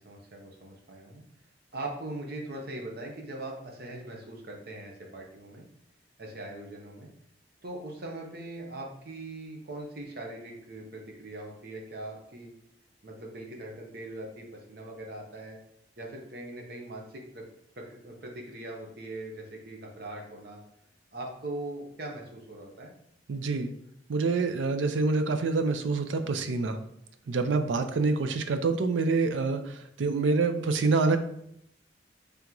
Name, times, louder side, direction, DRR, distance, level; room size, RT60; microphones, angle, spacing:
voice 1, 0.0-1.2 1.7-5.6 6.2-7.1 7.6-12.5 13.0-15.6 16.0-17.4 17.7-20.6 21.1-22.9, right 2 dB, 55° right, 0 dB, 0.8 m, -41 dB
voice 2, 23.3-23.7 24.1-26.8 27.3-31.2, right 3 dB, 90° right, 8 dB, 0.4 m, -26 dB
3.4 x 3.0 x 3.7 m, 0.73 s
head